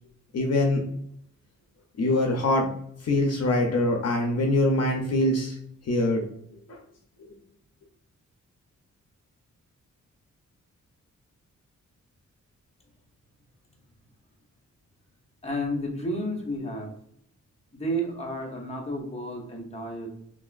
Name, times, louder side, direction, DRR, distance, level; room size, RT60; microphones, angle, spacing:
voice 1, 0.3-0.8 2.0-2.7 3.0-5.6 5.9-6.2 6.7-6.8, left 1 dB, 55° left, 2 dB, 0.6 m, -23 dB
voice 2, 15.4-16.9 17.7-20.1, equal, 20° left, 0 dB, 0.9 m, -31 dB
3.4 x 2.5 x 2.4 m, 0.71 s
cardioid pair, 90°, 30 cm